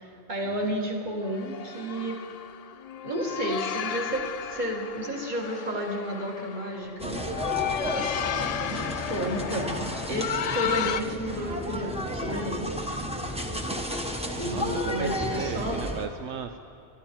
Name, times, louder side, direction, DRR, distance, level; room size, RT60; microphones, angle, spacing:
voice 1, 0.0-2.2 3.0-7.2 9.1-9.8 10.1-12.9 14.3-15.8, equal, 45° right, 0 dB, 2.1 m, -31 dB
sound 1, 1.2-11.0, left 9 dB, 55° left, 0.4 m, -33 dB
sound 2, 7.0-16.1, equal, 5° right, 1.0 m, -32 dB
voice 2, 8.0-8.5 14.5-16.6, right 8 dB, 85° right, 6 dB, 1.0 m, -37 dB
23.5 x 12.0 x 4.5 m, 2.6 s
omnidirectional pair, 1.1 m